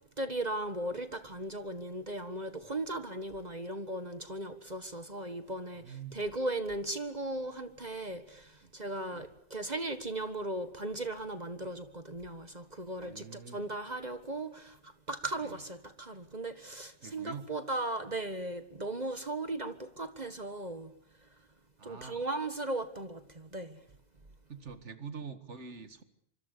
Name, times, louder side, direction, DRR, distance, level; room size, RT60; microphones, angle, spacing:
voice 1, 0.2-20.9 21.8-23.8, right 2 dB, 35° right, 1.8 m, -37 dB
voice 2, 5.8-6.2 8.6-8.7 9.1-9.3 11.6-11.8 13.0-13.7 15.4-15.6 17.0-17.5 21.8-22.3 24.5-26.0, right 6 dB, 80° right, 2.2 m, -45 dB
25.5 x 25.5 x 6.8 m
omnidirectional pair, 1.2 m